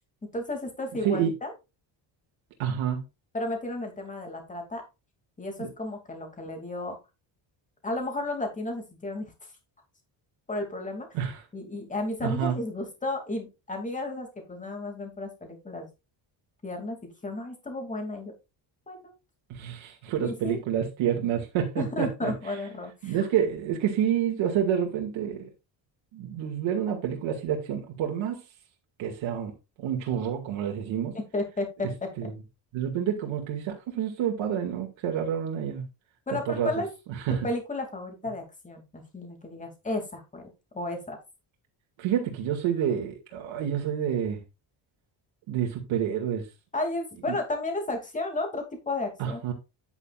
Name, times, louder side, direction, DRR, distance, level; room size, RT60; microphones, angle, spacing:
voice 1, 0.2-1.5 3.3-4.8 5.4-7.0 7.8-9.3 10.5-11.1 11.5-15.9 16.6-18.3 18.9-19.1 20.2-20.6 21.8-23.3 31.3-32.1 36.3-36.9 37.4-40.4 40.7-41.2 46.7-49.4, left 2 dB, 15° left, 2.7 m, -33 dB
voice 2, 2.6-3.0 5.6-5.7 11.1-11.4 12.2-12.6 19.5-22.3 23.0-25.5 26.1-28.4 29.0-29.5 29.8-31.1 32.2-32.3 32.7-35.8 36.3-36.7 37.3-37.4 42.0-44.4 45.5-46.4 47.3-47.4 49.2-49.5, right 9 dB, 75° right, 2.3 m, -28 dB
9.8 x 9.0 x 2.5 m
cardioid pair, 160°, 47 cm